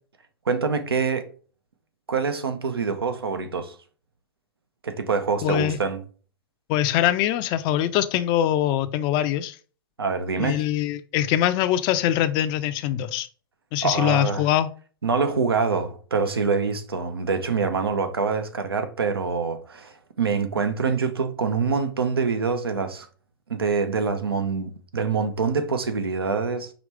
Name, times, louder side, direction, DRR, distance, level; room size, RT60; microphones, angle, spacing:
voice 1, 0.5-1.3 2.1-3.8 4.8-6.0 10.0-10.7 13.8-14.4 15.0-23.1 23.5-26.7, right 5 dB, 90° right, 0.7 m, -25 dB
voice 2, 5.4-5.8 6.7-9.6 10.4-13.3 13.7-14.7, left 12 dB, 35° left, 0.4 m, -23 dB
5.0 x 3.1 x 3.4 m
hypercardioid pair, 110°, 12 cm